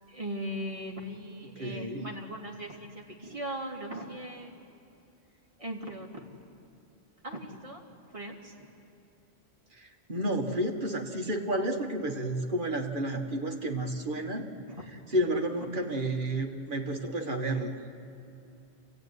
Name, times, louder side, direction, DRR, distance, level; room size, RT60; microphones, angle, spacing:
voice 1, 0.1-4.6 5.6-6.2 7.2-7.8 8.1-8.7 13.8-13.9 14.7-14.9 15.5-15.7, right 1 dB, 30° right, -1 dB, 2.8 m, -39 dB
voice 2, 1.6-2.1 9.7-14.5 15.1-17.7, right 1 dB, 50° right, 1 dB, 2.0 m, -31 dB
27.0 x 16.5 x 9.5 m, 2.6 s
omnidirectional pair, 1.1 m